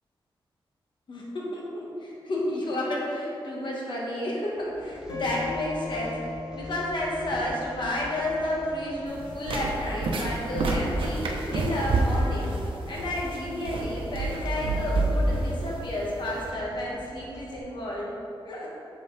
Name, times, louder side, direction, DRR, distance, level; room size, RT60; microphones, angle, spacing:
voice 1, 1.1-12.5 12.9-18.1 18.5-18.7, left 1 dB, 60° left, -4 dB, 1.4 m, -31 dB
sound 1, 4.5-17.6, equal, 10° right, 0.7 m, -46 dB
sound 2, 5.1-13.5, left 4 dB, 85° left, 1.6 m, -42 dB
sound 3, 9.1-16.5, right 2 dB, 80° right, 0.8 m, -28 dB
6.7 x 5.3 x 4.0 m, 2.9 s
wide cardioid pair, 140°, 9 cm